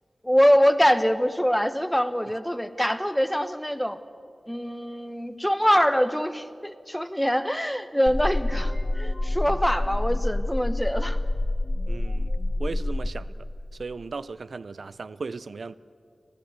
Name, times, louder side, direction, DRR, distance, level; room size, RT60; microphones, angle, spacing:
voice 1, 0.2-4.0 4.5-11.2, equal, 5° left, 1.1 m, -24 dB
sound 1, 8.1-13.1, left 1 dB, 20° left, 1.6 m, -27 dB
voice 2, 11.9-15.8, right 4 dB, 75° right, 0.5 m, -37 dB
26.5 x 16.0 x 8.0 m
wide cardioid pair, 80°, 0 cm